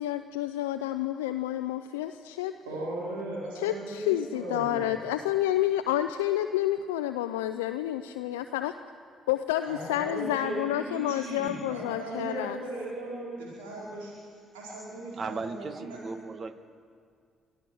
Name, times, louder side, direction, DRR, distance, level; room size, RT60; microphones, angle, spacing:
voice 1, 0.0-2.5 3.6-8.7 9.3-12.6, left 13 dB, 85° left, 8 dB, 0.5 m, -29 dB
voice 2, 2.6-4.9 9.6-14.1 14.5-16.0, right 2 dB, 85° right, -5 dB, 4.5 m, -37 dB
voice 3, 15.1-16.5, right 4 dB, 50° right, 11 dB, 1.4 m, -36 dB
24.0 x 14.0 x 7.8 m, 2.1 s
hypercardioid pair, 50°, 0 cm